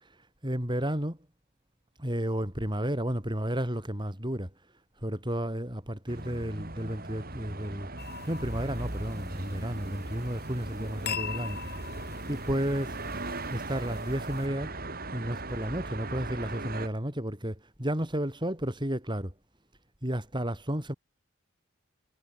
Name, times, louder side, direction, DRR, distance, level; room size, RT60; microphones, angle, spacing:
voice 1, 0.4-1.2 2.0-4.5 5.0-7.9 8.3-11.6 12.3-13.0 13.5-14.7 15.1-19.3 20.0-20.9, equal, 25° right, 6.9 m, -32 dB
sound 1, 6.1-16.9, right 2 dB, 45° right, 5.0 m, -39 dB
sound 2, 8.0-14.5, left 5 dB, 50° left, 7.1 m, -42 dB
head